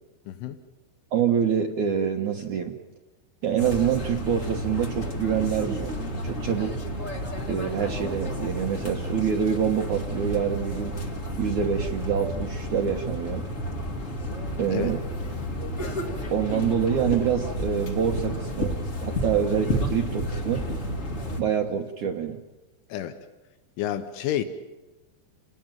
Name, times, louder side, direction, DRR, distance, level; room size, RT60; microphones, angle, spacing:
voice 1, 0.3-0.6 14.7-15.0 22.9-23.2 23.8-24.5, left 11 dB, 85° left, 10 dB, 3.5 m, -29 dB
voice 2, 1.1-2.7 3.4-5.9 6.2-6.8 7.5-10.9 11.4-13.5 14.6-15.0 16.3-20.7 21.4-22.4, right 8 dB, 80° right, 2 dB, 1.7 m, -26 dB
Laughter, 3.4-9.2, left 3 dB, 65° left, 5.9 m, -52 dB
sound 1, 3.6-21.4, equal, 35° left, 1.2 m, -31 dB
29.5 x 19.5 x 9.2 m, 1.1 s
omnidirectional pair, 5.4 m